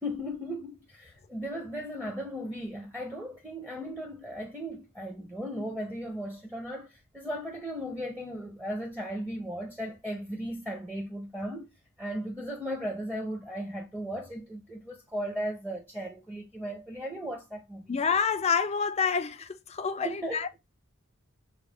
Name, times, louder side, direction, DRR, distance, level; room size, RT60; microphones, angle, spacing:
voice 1, 0.0-11.7 12.0-18.0 20.0-20.4, equal, 5° right, 0.7 m, -36 dB
voice 2, 17.9-20.6, left 6 dB, 30° left, 0.4 m, -28 dB
6.1 x 2.2 x 3.4 m
head